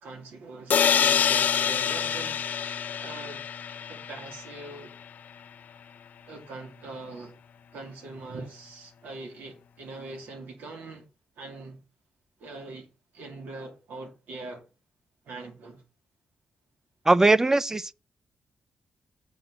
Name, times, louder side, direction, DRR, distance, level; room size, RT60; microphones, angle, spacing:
voice 1, 0.0-3.4 3.9-4.9 6.3-7.4 7.7-11.1 11.4-11.8 12.4-14.6 15.2-15.8, right 2 dB, 90° right, 2.4 m, -42 dB
sound 1, 0.7-4.5, left 8 dB, 65° left, 0.5 m, -26 dB
voice 2, 17.1-17.9, right 2 dB, 15° right, 0.4 m, -20 dB
7.8 x 4.5 x 6.2 m
cardioid pair, 100°, 3 cm